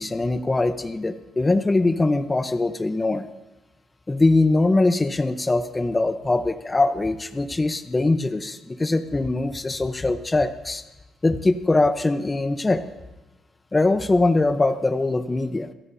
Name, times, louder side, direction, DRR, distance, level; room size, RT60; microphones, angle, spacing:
voice 1, 0.0-3.3 4.1-10.8 11.2-12.8 13.7-15.7, left 2 dB, 20° left, 8 dB, 0.9 m, -22 dB
26.5 x 13.5 x 2.8 m, 1.2 s
cardioid pair, 90°, 0 cm